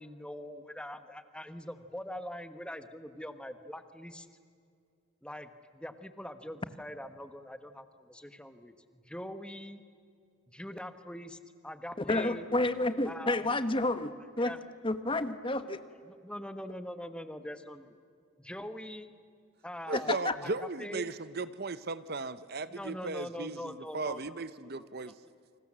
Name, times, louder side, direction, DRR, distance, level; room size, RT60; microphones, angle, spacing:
voice 1, 0.0-4.3 5.2-8.7 9.1-9.8 10.5-11.4 11.6-12.4 13.0-13.5 14.4-14.6 16.1-17.9 18.4-19.1 19.6-21.1 22.7-24.4, equal, 5° left, 1.3 m, -43 dB
voice 2, 12.0-14.1 14.4-14.5 14.8-15.8 19.9-20.3, left 2 dB, 25° left, 1.1 m, -30 dB
voice 3, 19.9-25.1, right 3 dB, 45° right, 0.8 m, -36 dB
29.5 x 26.5 x 7.5 m
head